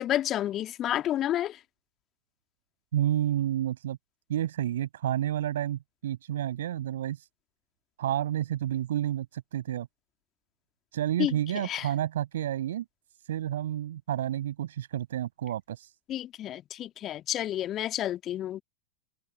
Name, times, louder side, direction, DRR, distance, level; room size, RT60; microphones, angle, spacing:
voice 1, 0.0-1.6 11.2-11.3 11.6-11.9 16.1-18.6, left 12 dB, 30° left, 2.1 m, -30 dB
voice 2, 2.9-4.0 4.3-7.3 8.0-9.9 10.9-12.8 13.3-15.9, right 11 dB, 60° right, 6.1 m, -30 dB
figure-of-eight pair, 90°, 0 cm